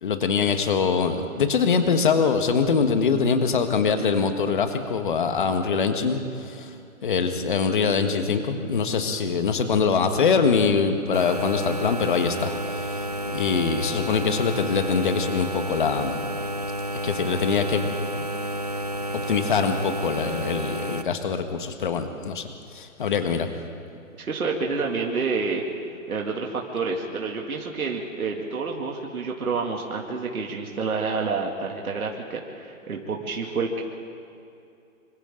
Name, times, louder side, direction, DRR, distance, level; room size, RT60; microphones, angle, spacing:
voice 1, 0.0-6.7 7.0-13.0 13.3-16.2 17.0-18.3 19.3-22.5 22.7-23.5, left 5 dB, 35° left, 7 dB, 1.4 m, -23 dB
sound 1, 11.1-21.0, equal, 30° right, 0.4 m, -30 dB
voice 2, 24.2-25.6 26.1-33.8, right 4 dB, 85° right, 0 dB, 2.7 m, -28 dB
26.5 x 25.5 x 3.9 m, 2.6 s
hypercardioid pair, 175°, 42 cm